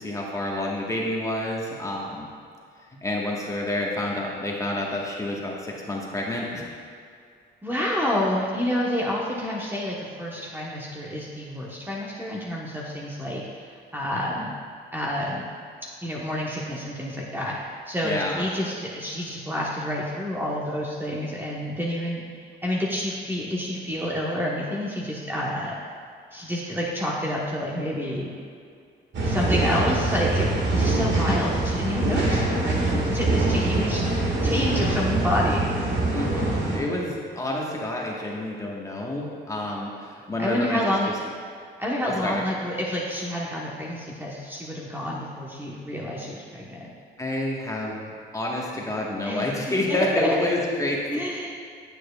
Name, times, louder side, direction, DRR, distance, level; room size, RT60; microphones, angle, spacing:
voice 1, 0.0-2.3 3.0-6.6 18.0-18.4 31.3-31.4 33.6-33.9 36.1-40.8 41.0-41.1 42.0-42.4 47.2-51.0, left 1 dB, 15° left, -3 dB, 1.3 m, -28 dB
voice 2, 7.6-13.6 13.9-14.5 14.9-15.5 16.0-17.6 17.9-22.2 22.6-25.7 26.3-28.3 29.2-34.2 34.4-35.7 40.4-41.1 41.8-46.9 49.2-49.5 49.9-50.0 50.2-50.3 51.1-51.5, left 1 dB, 10° right, -5 dB, 1.0 m, -28 dB
sound 1, 29.1-36.8, right 2 dB, 65° right, 1.7 m, -24 dB
9.0 x 7.7 x 2.3 m, 2.3 s
cardioid pair, 90°, 20 cm